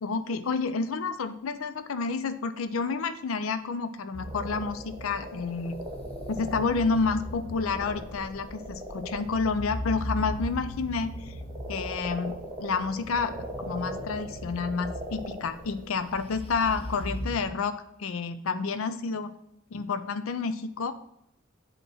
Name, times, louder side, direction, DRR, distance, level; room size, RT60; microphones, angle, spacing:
voice 1, 0.0-5.7 6.3-11.3 11.7-19.3 19.7-20.9, left 4 dB, 80° left, 10 dB, 0.5 m, -30 dB
sound 1, 4.1-17.4, equal, 30° left, 0.6 m, -39 dB
sound 2, 4.3-9.3 10.9-15.9, right 1 dB, 20° right, 1.2 m, -40 dB
8.0 x 2.9 x 6.1 m, 0.77 s
head